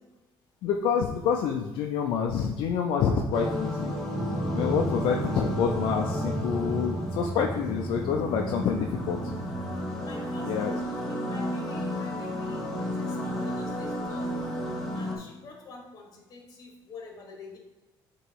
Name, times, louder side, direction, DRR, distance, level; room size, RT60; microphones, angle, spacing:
voice 1, 0.6-4.0 4.5-9.3 10.4-10.7, left 7 dB, 75° left, 2 dB, 0.5 m, -27 dB
sound 1, 3.3-15.2, left 1 dB, ahead, 1.3 m, -33 dB
Drum, 4.1-10.6, right 1 dB, 25° right, 1.2 m, -35 dB
voice 2, 10.0-14.3 14.9-17.6, left 3 dB, 45° left, 1 dB, 1.6 m, -46 dB
6.6 x 3.0 x 4.6 m, 1.1 s
cardioid pair, 135°, 9 cm